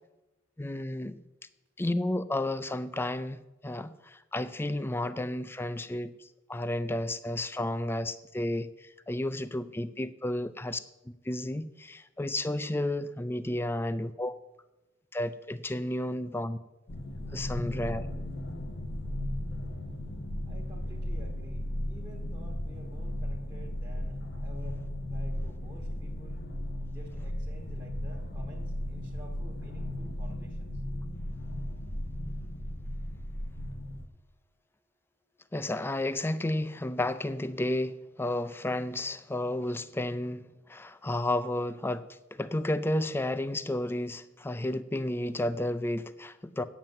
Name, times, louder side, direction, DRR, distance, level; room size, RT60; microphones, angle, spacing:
voice 1, 0.6-1.2 1.8-3.4 3.6-3.9 4.3-6.1 6.5-8.7 9.1-10.8 11.3-14.3 15.1-16.6 17.3-18.0 35.5-42.0 42.3-46.6, left 1 dB, 10° left, 0.4 m, -32 dB
sound 1, 16.9-34.0, left 1 dB, 50° left, 1.0 m, -36 dB
voice 2, 20.4-26.4 26.9-30.8, equal, 15° right, 1.5 m, -52 dB
9.4 x 7.3 x 7.6 m
head